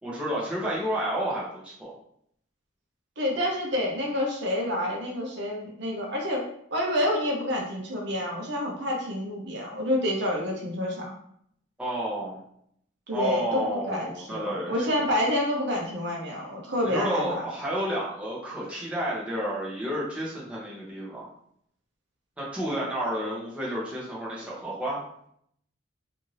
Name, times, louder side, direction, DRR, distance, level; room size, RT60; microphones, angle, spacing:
voice 1, 0.0-1.9 11.8-12.4 13.1-15.0 16.8-21.3 22.4-25.0, right 1 dB, 5° right, -6 dB, 0.7 m, -31 dB
voice 2, 3.2-6.4 6.7-11.1 13.1-17.4, left 1 dB, 60° right, -1 dB, 0.6 m, -28 dB
2.6 x 2.6 x 3.0 m, 0.69 s
head